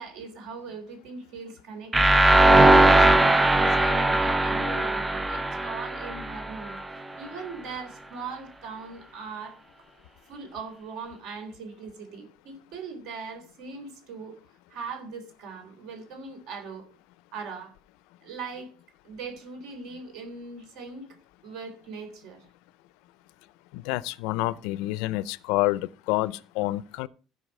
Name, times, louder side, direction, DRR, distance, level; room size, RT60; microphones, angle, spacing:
voice 1, 0.0-2.2 2.5-6.8 7.2-9.6 10.3-14.3 14.7-16.8 17.3-17.7 18.2-18.7 19.0-21.1 21.4-22.4, right 4 dB, 60° right, 3.5 m, -40 dB
sound 1, 1.9-6.8, right 2 dB, 10° right, 0.4 m, -19 dB
voice 2, 23.7-27.1, left 18 dB, 80° left, 0.5 m, -28 dB
15.0 x 5.5 x 5.4 m
cardioid pair, 175°, 0 cm